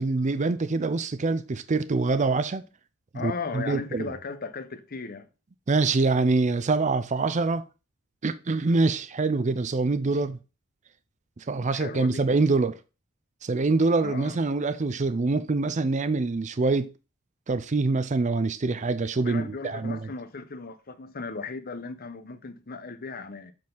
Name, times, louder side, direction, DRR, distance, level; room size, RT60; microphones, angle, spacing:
voice 1, 0.0-2.7 3.1-4.1 5.7-7.6 8.2-10.4 11.4-12.8 13.4-16.9 17.5-20.1, right 3 dB, 35° right, 0.5 m, -25 dB
voice 2, 3.1-5.3 11.7-12.2 14.0-14.4 19.2-23.5, left 4 dB, 45° left, 0.9 m, -36 dB
7.3 x 4.5 x 3.9 m
head